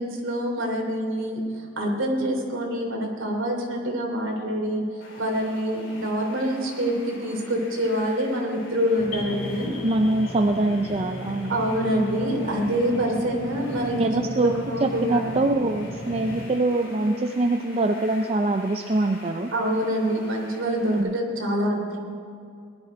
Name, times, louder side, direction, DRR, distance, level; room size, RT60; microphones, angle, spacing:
voice 1, 0.0-9.7 11.5-15.3 19.5-22.0, equal, 60° right, 0 dB, 3.0 m, -26 dB
sound 1, 5.0-21.0, left 2 dB, 55° left, 3.7 m, -46 dB
sound 2, 9.0-16.5, left 1 dB, 15° left, 1.1 m, -37 dB
sound 3, 9.1-13.6, left 4 dB, 85° left, 2.2 m, -45 dB
voice 2, 9.8-11.6 13.9-14.5 14.8-19.5 20.8-21.2, right 2 dB, 30° right, 5 dB, 0.5 m, -24 dB
19.0 x 11.5 x 5.0 m, 2.4 s
head